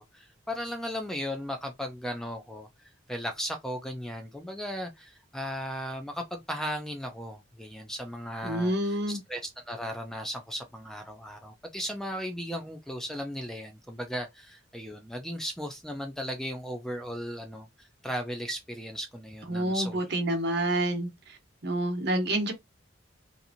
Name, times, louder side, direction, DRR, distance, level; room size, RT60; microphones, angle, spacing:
voice 1, 0.0-2.7 3.1-20.2, equal, ahead, 0.4 m, -36 dB
voice 2, 8.4-9.2 19.5-21.1 21.6-22.5, right 1 dB, 55° right, 0.9 m, -28 dB
2.8 x 2.5 x 2.5 m
head